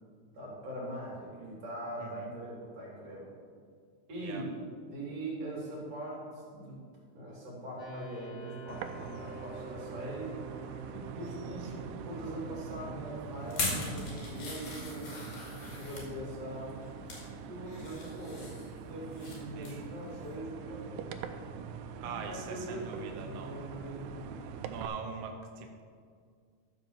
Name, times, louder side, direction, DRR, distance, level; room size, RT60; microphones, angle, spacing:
voice 1, 0.3-3.3 4.1-4.5 4.9-6.8 7.1-10.4 10.9-16.8 17.5-21.1 21.8-24.3, right 1 dB, 55° right, -5 dB, 4.0 m, -42 dB
sound 1, 7.8-20.6, right 4 dB, 35° left, 2.4 m, -50 dB
sound 2, 8.7-24.9, right 6 dB, 90° right, 2.1 m, -44 dB
sound 3, 13.5-16.1 16.7-17.3 17.7-19.4 19.6-19.9 20.3-20.4, left 2 dB, 75° left, 3.9 m, -39 dB
voice 2, 22.0-23.7 24.6-25.8, right 6 dB, 70° right, 3 dB, 1.5 m, -42 dB
12.5 x 4.9 x 7.1 m, 2.1 s
omnidirectional pair, 3.5 m